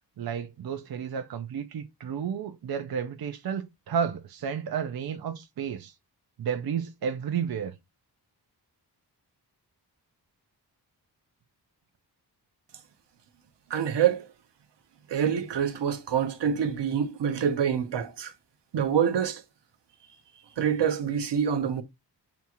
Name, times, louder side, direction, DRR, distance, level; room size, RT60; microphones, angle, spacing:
voice 1, 0.2-5.9 6.4-7.7, right 7 dB, 60° right, 0.6 m, -32 dB
voice 2, 13.7-14.3 15.1-18.3 18.7-19.4 20.6-21.8, right 8 dB, 90° right, 0.8 m, -26 dB
6.8 x 2.4 x 2.9 m
wide cardioid pair, 175°, 41 cm